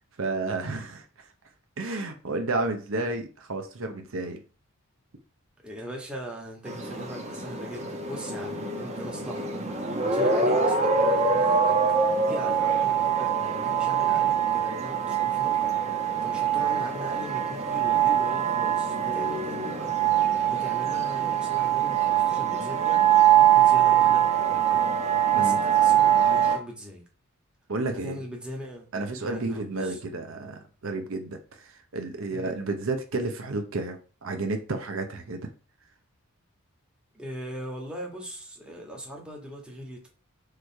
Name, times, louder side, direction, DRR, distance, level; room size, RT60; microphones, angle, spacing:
voice 1, 0.2-1.3 1.8-4.4 25.3-25.6 27.7-28.2 28.9-35.5, right 2 dB, 65° right, 5 dB, 0.8 m, -31 dB
voice 2, 5.6-9.5 10.0-11.8 12.2-23.0 23.4-25.1 25.3-27.0 28.0-28.9 29.2-30.0 32.3-32.6 37.1-40.1, equal, 5° right, -2 dB, 1.6 m, -40 dB
sound 1, 6.6-26.6, right 8 dB, 30° right, 1.0 m, -23 dB
6.7 x 3.3 x 4.6 m, 0.37 s
head